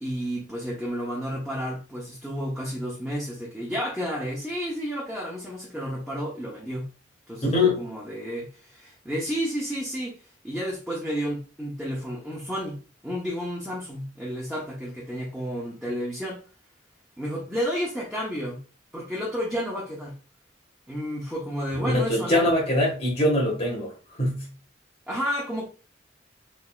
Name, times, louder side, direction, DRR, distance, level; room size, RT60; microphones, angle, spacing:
voice 1, 0.0-6.9 7.3-10.2 10.4-12.8 13.0-16.4 17.2-18.6 18.9-20.1 20.9-22.5 25.1-25.7, equal, ahead, 0.9 m, -31 dB
voice 2, 7.4-7.8 21.8-23.9 24.2-24.5, left 1 dB, 35° left, 1.7 m, -23 dB
4.1 x 3.4 x 2.4 m
head